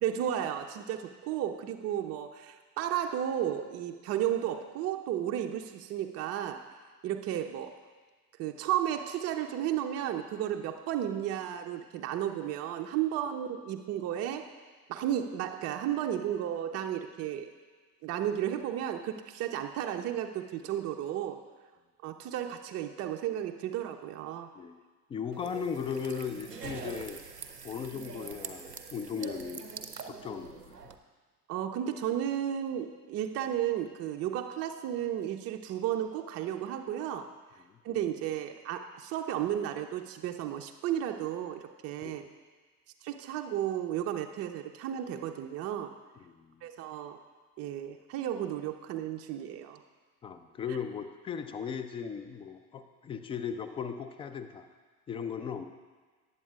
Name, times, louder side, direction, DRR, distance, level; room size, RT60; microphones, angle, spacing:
voice 1, 0.0-6.7 7.0-7.8 8.4-14.5 14.9-17.5 18.0-21.4 22.0-24.5 31.5-37.3 37.8-42.2 43.0-45.9 46.6-47.2 47.6-49.8, right 10 dB, 35° right, 5 dB, 0.6 m, -33 dB
voice 2, 25.1-27.2 27.6-29.6 30.0-30.8 37.7-37.8 42.0-42.2 46.2-46.5 50.2-54.6 55.1-55.7, left 6 dB, 15° left, 9 dB, 0.3 m, -37 dB
sound 1, 25.3-30.9, right 5 dB, 90° right, 0.6 m, -44 dB
19.0 x 8.1 x 2.4 m, 1.4 s
figure-of-eight pair, 65°, 47 cm